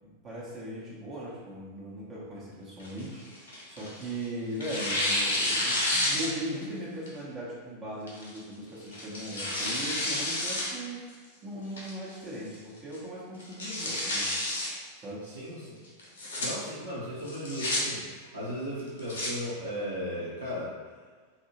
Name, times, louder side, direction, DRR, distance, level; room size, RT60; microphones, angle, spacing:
voice 1, 0.0-14.4 15.0-15.2, right 1 dB, 30° right, -8 dB, 0.8 m, -39 dB
Tearing, 2.8-4.1 4.6-6.6 7.1-7.2 8.1-8.4 8.9-10.7 11.1-11.2 11.8-12.2 12.5-12.6 12.9-13.0 13.4-14.7 16.0-16.5 17.3-17.8 18.8-19.3, left 1 dB, 65° left, 0.7 m, -30 dB
voice 2, 15.2-15.8 16.4-20.7, equal, 80° right, -11 dB, 0.7 m, -36 dB
2.7 x 2.5 x 2.9 m, 1.5 s
figure-of-eight pair, 90°, 0 cm